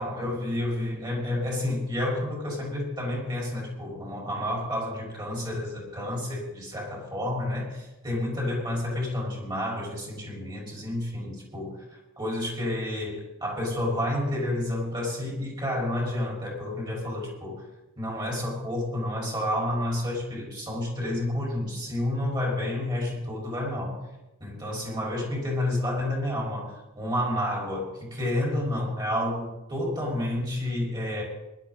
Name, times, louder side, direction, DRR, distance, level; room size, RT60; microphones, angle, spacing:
voice 1, 0.0-17.6 18.0-24.0 24.4-31.2, left 1 dB, 20° right, -3 dB, 5.5 m, -30 dB
21.5 x 12.0 x 4.2 m, 0.93 s
head